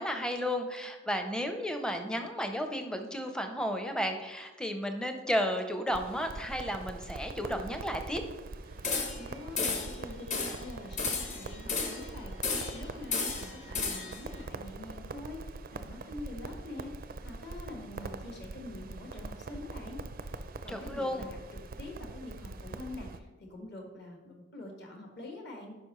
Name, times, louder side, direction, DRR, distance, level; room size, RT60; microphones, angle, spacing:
voice 1, 0.0-8.2 20.7-21.3, equal, 5° left, 5 dB, 0.6 m, -33 dB
Crackle, 5.9-23.2, right 3 dB, 45° right, 0.4 m, -43 dB
sound 1, 8.8-9.3 9.6-10.0 10.3-10.6 11.0-12.1 12.4-12.8 13.1-14.2, left 4 dB, 35° left, 0.9 m, -33 dB
voice 2, 8.9-20.0 20.6-21.4 21.8-25.8, left 2 dB, 50° left, 1 dB, 1.4 m, -45 dB
11.5 x 5.1 x 3.1 m, 1.2 s
head